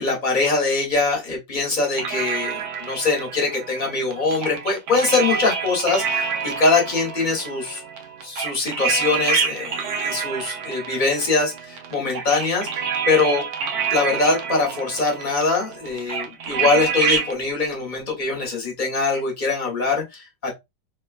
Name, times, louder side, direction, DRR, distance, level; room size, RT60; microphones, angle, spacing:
voice 1, 0.0-7.8 8.2-13.4 13.9-20.5, left 3 dB, 35° left, 1.0 m, -23 dB
sound 1, 1.9-17.3, right 5 dB, 70° right, 1.1 m, -27 dB
3.2 x 2.2 x 2.3 m
omnidirectional pair, 1.8 m